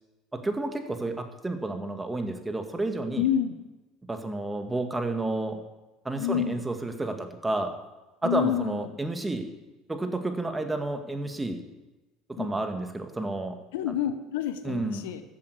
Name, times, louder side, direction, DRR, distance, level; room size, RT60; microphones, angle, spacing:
voice 1, 0.3-3.3 4.1-5.6 6.0-7.7 8.2-9.5 9.9-11.6 12.3-13.6 13.9-14.0 14.6-15.1, right 2 dB, 15° right, 6 dB, 1.9 m, -31 dB
voice 2, 3.2-3.6 6.2-6.6 8.2-8.9 12.4-12.5 13.7-15.2, left 10 dB, 75° left, 11 dB, 0.9 m, -28 dB
14.5 x 8.7 x 6.7 m, 1.1 s
hypercardioid pair, 70°, 0 cm